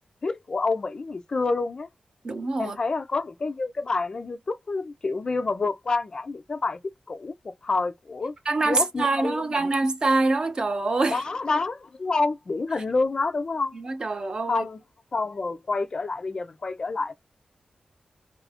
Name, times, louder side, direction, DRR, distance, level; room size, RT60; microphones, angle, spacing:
voice 1, 0.2-1.9 2.6-6.8 7.1-7.3 7.6-8.3 8.6-9.7 11.1-13.8 14.5-14.8 15.1-17.1, left 3 dB, 35° left, 0.3 m, -28 dB
voice 2, 2.2-2.8 8.5-11.2 13.7-14.6, right 3 dB, 35° right, 0.5 m, -25 dB
2.7 x 2.4 x 3.4 m
wide cardioid pair, 180°, 2 cm